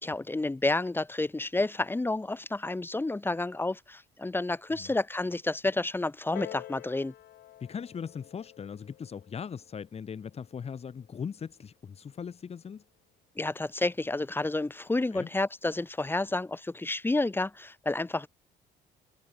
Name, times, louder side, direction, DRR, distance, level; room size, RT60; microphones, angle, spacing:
voice 1, 0.0-7.1 13.4-18.3, left 2 dB, 10° left, 1.8 m, -30 dB
Piano, 6.3-11.5 12.4-12.5, left 13 dB, 70° left, 7.7 m, -49 dB
voice 2, 7.6-12.8 15.1-15.3, left 6 dB, 35° left, 4.3 m, -39 dB
cardioid pair, 110°, 17 cm